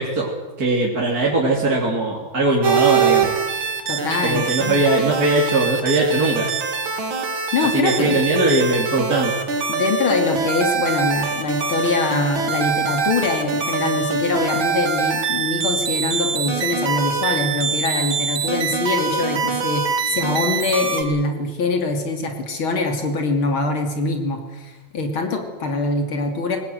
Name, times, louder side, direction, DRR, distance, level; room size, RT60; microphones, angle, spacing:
voice 1, 0.0-3.4 4.2-6.5 7.7-9.4, right 2 dB, 45° right, -2 dB, 3.5 m, -20 dB
sound 1, 2.6-21.0, right 5 dB, 75° right, 3.1 m, -23 dB
voice 2, 3.9-4.8 7.5-8.2 9.7-26.6, left 3 dB, 80° left, 5 dB, 3.4 m, -23 dB
22.0 x 19.5 x 9.3 m, 1.2 s
omnidirectional pair, 2.2 m